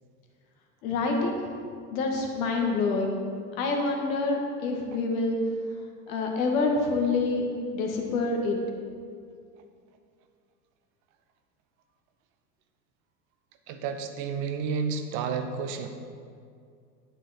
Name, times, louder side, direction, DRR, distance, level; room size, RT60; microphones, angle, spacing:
voice 1, 0.8-1.4 1.9-3.2 3.6-5.4 6.1-7.4 7.7-8.6, left 3 dB, 55° left, 2 dB, 2.1 m, -27 dB
voice 2, 13.7-15.9, right 5 dB, 40° right, 7 dB, 1.1 m, -31 dB
10.5 x 9.2 x 4.5 m, 2.3 s
figure-of-eight pair, 85°, 49 cm